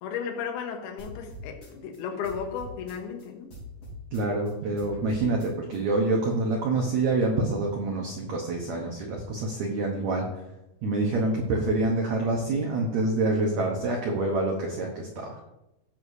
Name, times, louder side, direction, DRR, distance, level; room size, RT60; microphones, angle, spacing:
voice 1, 0.0-3.5, left 7 dB, 75° left, 3 dB, 3.0 m, -34 dB
sound 1, 1.0-3.2 3.5-5.8, left 1 dB, 25° left, 4.1 m, -43 dB
voice 2, 4.1-10.3 10.8-15.4, right 2 dB, 80° right, 0 dB, 1.6 m, -26 dB
16.5 x 6.4 x 2.7 m, 0.93 s
omnidirectional pair, 4.8 m